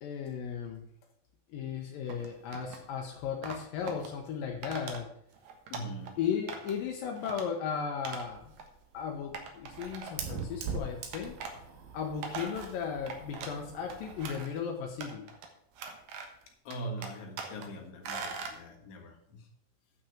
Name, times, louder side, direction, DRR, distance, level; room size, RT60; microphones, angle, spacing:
voice 1, 0.0-0.8 1.5-5.1 6.2-8.5 8.9-11.4 11.9-15.3, left 7 dB, 80° left, 2 dB, 2.7 m, -36 dB
sound 1, 2.1-2.9 3.4-4.1 4.6-5.0 5.3-6.1 6.5-6.8 7.2-7.5 8.1-8.3 8.6-8.7 9.3-10.4 11.1-11.6 12.0-13.6 13.9-14.6 15.0-15.5 15.8-16.4 16.7-17.7 18.0-18.6, right 5 dB, 60° right, 2.4 m, -41 dB
voice 2, 5.7-6.2 16.6-19.5, right 1 dB, 60° left, 1 dB, 2.9 m, -42 dB
Fire, 8.2-14.4, right 4 dB, 85° right, 3.3 m, -42 dB
9.4 x 6.0 x 7.2 m, 0.71 s
omnidirectional pair, 4.1 m